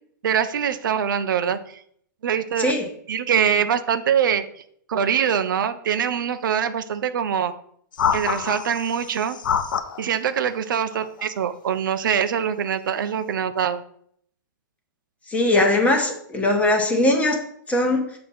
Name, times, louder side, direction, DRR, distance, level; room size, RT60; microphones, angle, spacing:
voice 1, 0.2-1.6 2.2-2.7 3.1-4.4 4.9-7.5 8.1-9.4 10.0-13.8, right 8 dB, 80° right, 10 dB, 0.5 m, -23 dB
sound 1, 7.9-10.0 10.9-11.2, left 7 dB, 80° left, 0.6 m, -26 dB
voice 2, 15.3-17.4 17.7-18.1, left 1 dB, 15° left, 2 dB, 1.2 m, -20 dB
6.6 x 2.9 x 5.5 m, 0.65 s
hypercardioid pair, 130°, 11 cm